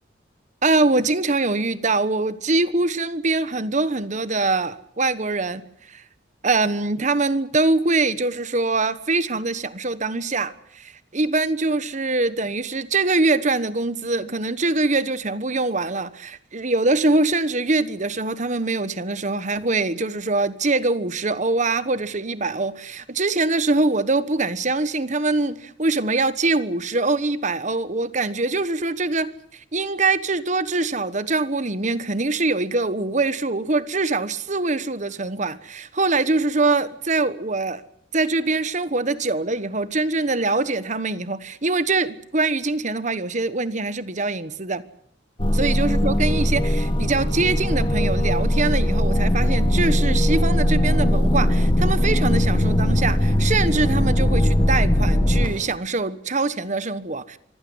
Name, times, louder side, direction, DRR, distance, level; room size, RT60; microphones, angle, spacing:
voice 1, 0.6-6.0 6.4-37.8 38.1-44.8 45.5-57.4, right 3 dB, 40° right, 1.3 m, -23 dB
sound 1, 45.4-55.8, left 1 dB, 25° left, 1.4 m, -20 dB
25.0 x 16.0 x 9.7 m
head